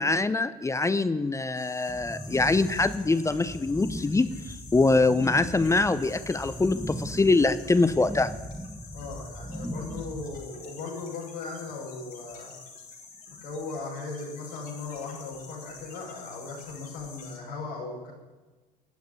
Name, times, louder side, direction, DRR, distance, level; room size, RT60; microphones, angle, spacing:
voice 1, 0.0-8.3, left 3 dB, 15° left, 13 dB, 0.7 m, -24 dB
sound 1, 1.5-17.4, left 5 dB, 50° left, 4.6 m, -48 dB
sound 2, 1.9-10.4, equal, ahead, 1.3 m, -38 dB
voice 2, 8.9-12.6 13.3-18.1, left 4 dB, 70° left, -3 dB, 6.0 m, -38 dB
16.5 x 6.7 x 9.9 m, 1.2 s
hypercardioid pair, 70°, 20 cm